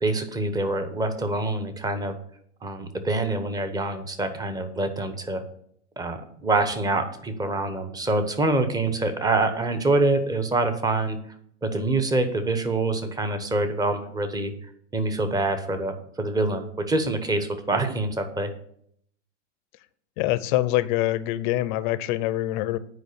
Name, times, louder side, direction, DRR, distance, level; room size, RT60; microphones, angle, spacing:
voice 1, 0.0-2.2 2.6-5.4 6.0-11.2 11.6-14.5 14.9-18.5, right 2 dB, 10° right, 9 dB, 0.9 m, -25 dB
voice 2, 20.2-22.8, left 15 dB, 45° left, 15 dB, 0.7 m, -25 dB
9.3 x 5.0 x 6.7 m, 0.66 s
hypercardioid pair, 125°, 35 cm